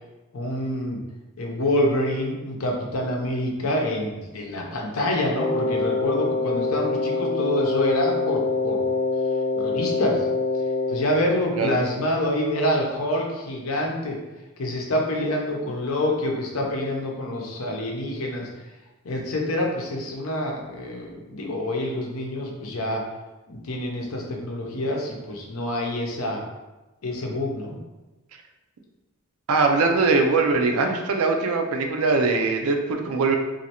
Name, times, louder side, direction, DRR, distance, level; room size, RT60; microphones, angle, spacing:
voice 1, 0.3-1.0 1.4-8.9 9.5-10.3 10.9-14.2 14.6-18.5 19.0-23.0 23.5-26.4 27.0-27.8, left 1 dB, 80° left, 0 dB, 0.7 m, -26 dB
Wind instrument woodwind instrument, 5.3-11.1, left 3 dB, 35° left, 0.4 m, -25 dB
voice 2, 29.5-33.4, right 3 dB, 90° right, 4 dB, 0.4 m, -21 dB
3.1 x 2.5 x 2.8 m, 1.1 s
head